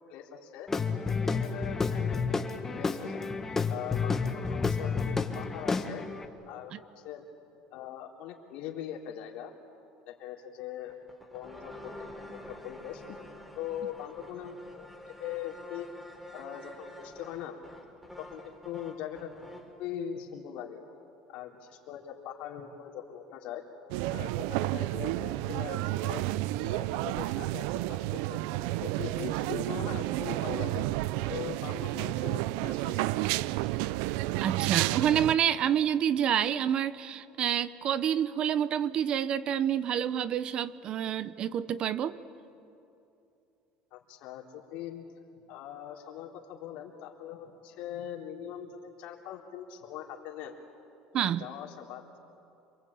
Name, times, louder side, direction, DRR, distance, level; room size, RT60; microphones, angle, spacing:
voice 1, 0.1-0.7 1.0-3.3 3.7-6.0 6.5-7.3 7.7-9.5 10.1-10.9 11.3-13.2 13.6-14.9 15.2-15.9 16.3-17.6 18.2-19.3 19.8-20.8 21.3-23.6 24.1-26.2 26.6-28.4 28.8-30.8 31.3-33.1 43.9-45.0 45.3-50.6 51.1-52.2, left 9 dB, 70° left, 0 dB, 3.5 m, -41 dB
Guitar / Drum, 0.7-6.3, left 4 dB, 15° left, 1.5 m, -30 dB
sound 1, 10.9-19.8, left 1 dB, 5° right, 3.9 m, -48 dB
sound 2, 23.9-35.4, right 17 dB, 80° right, 0.5 m, -31 dB
voice 2, 34.4-42.2 51.1-51.5, right 9 dB, 45° right, 15 dB, 0.9 m, -28 dB
27.5 x 22.5 x 8.6 m, 2.7 s
supercardioid pair, 115°, 2 cm